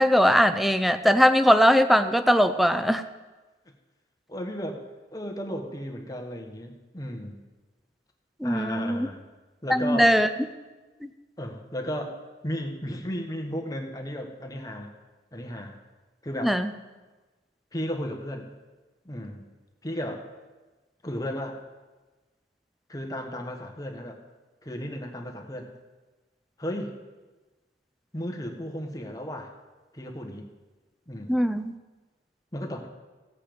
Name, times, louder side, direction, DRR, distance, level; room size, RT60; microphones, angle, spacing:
voice 1, 0.0-3.0 8.4-9.1 9.7-10.3 16.4-16.7 31.3-31.7, equal, ahead, 10 dB, 0.5 m, -20 dB
voice 2, 4.3-4.8 5.1-7.3 8.4-9.2 9.6-10.2 11.4-14.9 15.3-15.7 16.2-16.6 17.7-18.5 19.0-19.4 19.8-20.3 21.0-21.6 22.9-24.2 24.6-25.7 26.6-27.0 28.1-29.5 29.9-30.5 31.1-31.4 32.5-32.9, equal, 20° left, 2 dB, 1.3 m, -34 dB
15.5 x 8.4 x 5.2 m, 1.2 s
head